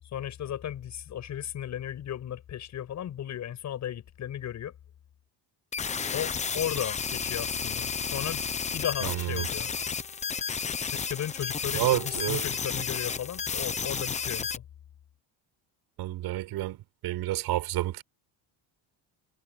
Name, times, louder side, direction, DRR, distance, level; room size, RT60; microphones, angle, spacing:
voice 1, 0.1-4.7 6.1-8.4 8.7-9.7 10.9-14.6, left 10 dB, 35° left, 7.6 m, -35 dB
sound 1, 5.7-14.6, left 6 dB, 15° left, 0.7 m, -32 dB
voice 2, 9.0-9.5 11.7-12.4 16.0-16.8 17.0-18.0, right 15 dB, 55° right, 4.9 m, -29 dB
cardioid pair, 170°, 46 cm